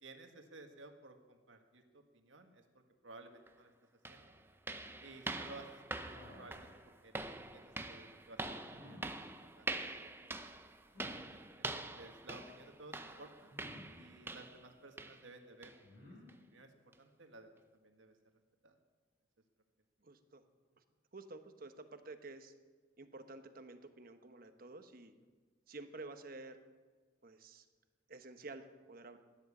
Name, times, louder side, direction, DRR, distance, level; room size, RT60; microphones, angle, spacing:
voice 1, 0.0-2.6 3.0-3.7 4.1-4.4 5.0-5.8 6.4-7.2 7.5-10.5 11.6-13.5 13.9-15.8 16.5-16.7 17.0-18.1 18.6-18.8, right 2 dB, 85° right, 5 dB, 1.7 m, -56 dB
sound 1, 3.5-3.6 4.0-14.7 15.0-15.3 15.6-15.8 16.3-16.4 16.9-17.0, right 2 dB, 10° right, 0.7 m, -45 dB
sound 2, 6.0-6.7 8.7-9.1 10.9-11.2 13.5-14.0 15.8-16.2, left 1 dB, 55° left, 5.1 m, -55 dB
voice 2, 20.0-20.5 20.8-20.9 21.1-22.5 23.0-25.1 25.7-26.6 27.2-27.7 28.1-29.2, right 2 dB, 50° right, 8 dB, 1.1 m, -51 dB
16.0 x 10.5 x 7.3 m, 1.4 s
head